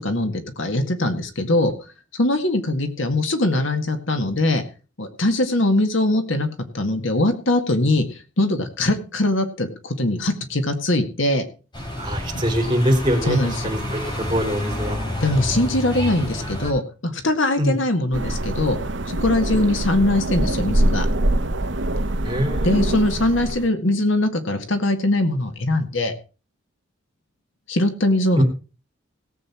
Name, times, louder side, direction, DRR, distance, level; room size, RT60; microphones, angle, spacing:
voice 1, 0.0-1.7 2.1-4.6 5.0-6.5 6.7-11.5 12.3-12.5 13.3-13.7 15.2-18.8 19.1-21.1 22.6-26.1 27.7-28.4, left 1 dB, 75° left, 7 dB, 1.9 m, -21 dB
sound 1, 11.7-16.7, left 1 dB, 25° left, 5.0 m, -29 dB
voice 2, 12.0-13.4 13.6-14.0 14.3-15.0 17.6-17.7 22.2-22.8 28.4-28.5, equal, 25° right, 1 dB, 3.7 m, -22 dB
sound 2, 18.1-23.7, right 1 dB, 65° right, 1.2 m, -23 dB
17.5 x 8.1 x 4.4 m, 0.33 s
head